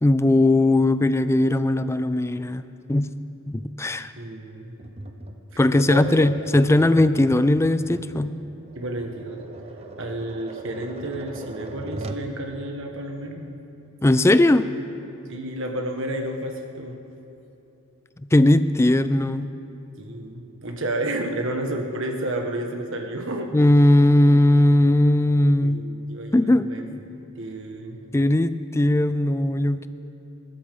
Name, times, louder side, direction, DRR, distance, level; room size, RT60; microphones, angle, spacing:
voice 1, 0.0-3.1 3.5-4.1 5.6-8.3 14.0-14.7 18.2-19.5 23.5-25.9 26.3-27.0 28.1-29.9, left 1 dB, 10° left, 13 dB, 0.4 m, -19 dB
voice 2, 4.2-4.8 5.9-6.2 8.7-9.4 10.0-13.6 15.3-17.0 20.0-23.5 25.6-26.8 27.1-28.0, right 1 dB, 60° right, 3 dB, 1.5 m, -31 dB
Tap, 4.8-12.3, right 2 dB, 30° right, 0.8 m, -40 dB
28.5 x 13.0 x 3.7 m, 2.9 s
head